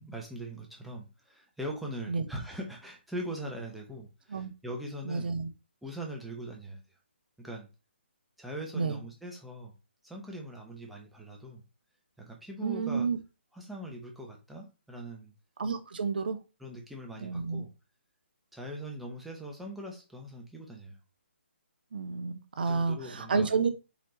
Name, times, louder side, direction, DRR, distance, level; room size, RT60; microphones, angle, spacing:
voice 1, 0.0-5.3 5.8-6.8 7.4-7.7 8.4-9.7 10.0-11.6 12.2-13.1 13.5-15.3 16.6-17.7 18.5-21.0 22.6-23.6, right 1 dB, ahead, -1 dB, 0.8 m, -41 dB
voice 2, 5.0-5.5 8.7-9.0 12.6-13.2 15.6-16.4 17.2-17.6 21.9-23.7, right 4 dB, 50° right, 10 dB, 0.6 m, -30 dB
4.2 x 3.9 x 3.1 m, 0.29 s
figure-of-eight pair, 140°, 6 cm